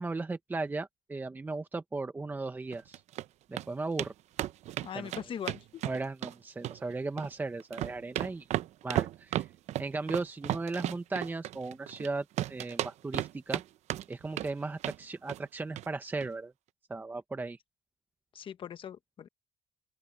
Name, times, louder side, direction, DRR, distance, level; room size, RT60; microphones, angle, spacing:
voice 1, 0.0-3.0 3.5-4.1 4.9-5.1 5.8-8.5 8.8-9.5 9.8-13.6 14.1-16.5 16.9-17.6, right 3 dB, 15° right, 0.9 m, -36 dB
sound 1, 2.7-3.2 3.6-3.7 4.0-4.1 4.4-6.3 6.6-7.3 7.6-12.1 12.4-13.6 13.9-14.5 14.8-15.0 15.3-15.5 15.8-15.9 16.2-16.3, right 13 dB, 60° right, 0.8 m, -34 dB
voice 2, 4.8-5.8 18.3-19.3, left 8 dB, 45° left, 1.1 m, -40 dB
open air
cardioid pair, 125°, 13 cm